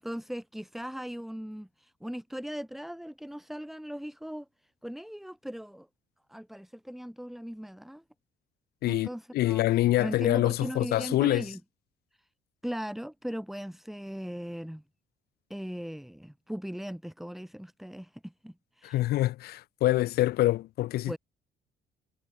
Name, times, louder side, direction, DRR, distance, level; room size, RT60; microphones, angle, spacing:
voice 1, 0.0-4.5 4.8-5.9 6.3-8.0 8.8-11.6 12.6-14.8 15.5-19.0 21.1-21.2, equal, ahead, 4.8 m, -38 dB
voice 2, 9.3-11.4 18.8-21.2, left 15 dB, 70° left, 0.7 m, -25 dB
cardioid pair, 110°, 17 cm